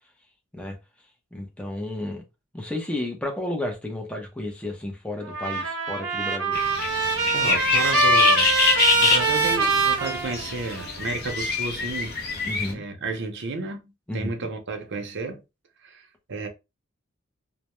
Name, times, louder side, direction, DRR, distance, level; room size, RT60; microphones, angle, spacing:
voice 1, 1.3-2.2 2.5-6.6 12.4-12.8 14.1-14.5, left 1 dB, 5° left, 0.6 m, -32 dB
Trumpet, 5.2-10.9, right 2 dB, 80° right, 0.8 m, -23 dB
sound 1, 6.5-12.7, left 5 dB, 50° left, 0.6 m, -26 dB
voice 2, 7.3-8.5 9.0-12.1 12.7-15.4 15.8-16.5, right 3 dB, 55° right, 0.6 m, -32 dB
2.2 x 2.0 x 2.9 m
head